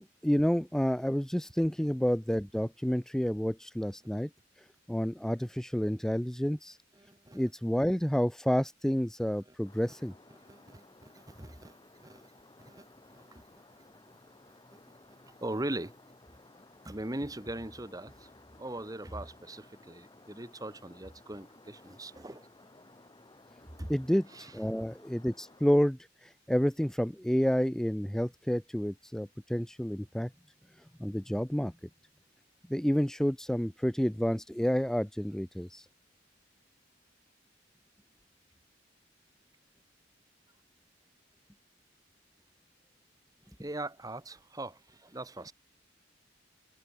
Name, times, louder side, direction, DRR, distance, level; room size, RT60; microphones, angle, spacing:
voice 1, 0.0-4.3 4.9-6.8 7.3-10.1 23.9-30.3 31.0-31.7 32.7-35.9, equal, 5° left, 0.4 m, -29 dB
voice 2, 6.9-7.4 9.4-9.5 9.9-10.0 10.3-12.3 12.6-14.2 14.5-14.8 15.1-15.9 16.8-22.5 23.8-23.9 24.3-24.6 43.6-45.5, right 1 dB, 20° right, 1.6 m, -41 dB
sound 1, 9.7-25.8, left 2 dB, 25° left, 1.6 m, -58 dB
head